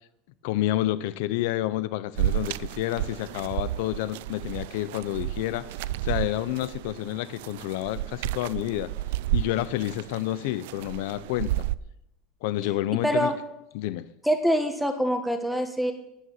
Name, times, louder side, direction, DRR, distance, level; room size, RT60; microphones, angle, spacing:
voice 1, 0.4-8.9 9.3-11.5 12.4-13.3 13.7-14.1, left 15 dB, 70° left, 15 dB, 0.7 m, -29 dB
sound 1, 2.2-11.8, right 14 dB, 80° right, 0.5 m, -32 dB
voice 2, 13.0-13.4 14.2-15.9, equal, ahead, 6 dB, 1.5 m, -24 dB
13.0 x 9.4 x 9.4 m, 0.84 s
supercardioid pair, 155°, 0 cm